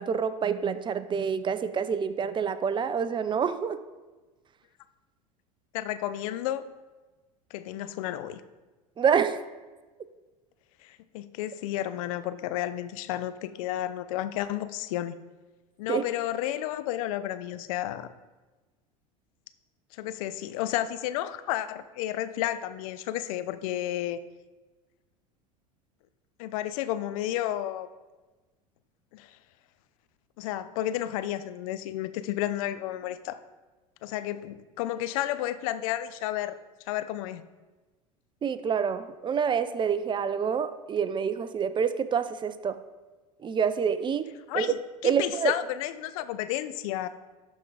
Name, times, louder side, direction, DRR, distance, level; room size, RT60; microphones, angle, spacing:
voice 1, 0.0-3.8 9.0-9.4 15.9-16.0 38.4-42.8 43.4-44.3 44.5-44.7 45.0-45.5, right 7 dB, 25° right, 12 dB, 0.5 m, -27 dB
voice 2, 5.7-6.6 7.5-8.4 10.8-15.2 15.8-18.1 20.0-24.2 26.4-27.9 29.1-29.3 30.4-33.4 34.0-36.6 36.9-37.4 44.5-44.8 45.0-47.1, left 13 dB, 65° left, 13 dB, 0.5 m, -32 dB
11.5 x 3.8 x 4.7 m, 1.2 s
hypercardioid pair, 85°, 19 cm